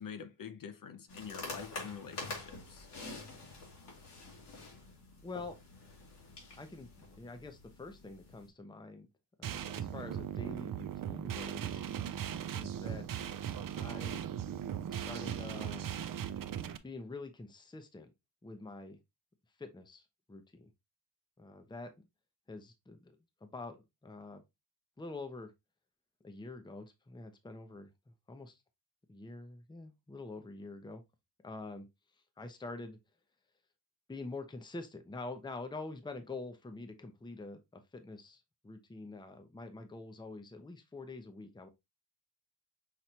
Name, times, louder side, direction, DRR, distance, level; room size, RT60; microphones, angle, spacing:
voice 1, 0.0-2.9, left 7 dB, 55° left, 0.7 m, -46 dB
sound 1, 1.1-8.5, left 3 dB, 80° left, 2.4 m, -47 dB
voice 2, 5.2-5.6 6.6-9.1 9.4-11.8 12.5-13.1 13.8-14.2 14.9-15.9 16.8-18.1 18.4-19.0 19.6-20.7 21.4-22.1 22.5-23.2 23.4-24.4 25.0-25.5 26.2-28.6 29.1-31.0 31.4-31.9 32.4-33.0 34.1-41.7, left 3 dB, 10° left, 0.6 m, -46 dB
sound 2, 9.4-16.8, right 9 dB, 55° right, 0.5 m, -38 dB
5.9 x 3.2 x 2.7 m
wide cardioid pair, 140°, 41 cm